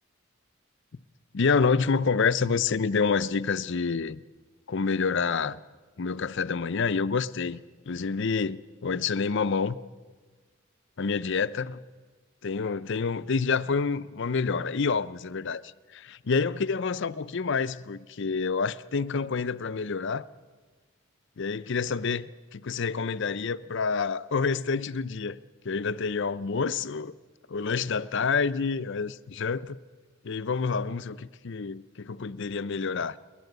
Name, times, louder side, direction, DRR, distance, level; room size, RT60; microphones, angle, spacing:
voice 1, 1.3-4.2 4.7-5.6 6.0-9.8 11.0-11.8 12.4-15.6 15.9-20.3 21.4-25.4 25.6-27.1 27.5-29.8 30.2-33.2, left 5 dB, 60° left, 0.6 m, -28 dB
29.5 x 11.5 x 8.0 m
head